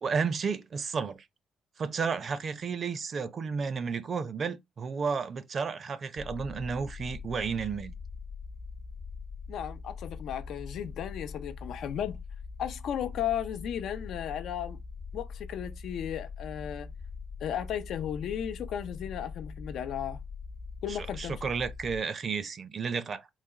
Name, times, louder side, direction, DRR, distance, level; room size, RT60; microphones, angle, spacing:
voice 1, 0.0-1.2 1.8-7.9 20.9-23.3, right 5 dB, 50° right, 0.7 m, -32 dB
sound 1, 6.2-22.0, left 4 dB, 40° left, 0.7 m, -42 dB
voice 2, 9.5-12.2 12.6-14.8 15.1-16.9 17.4-20.2 20.8-21.4, left 9 dB, 75° left, 0.5 m, -35 dB
4.1 x 2.3 x 4.6 m
cardioid pair, 90°, 0 cm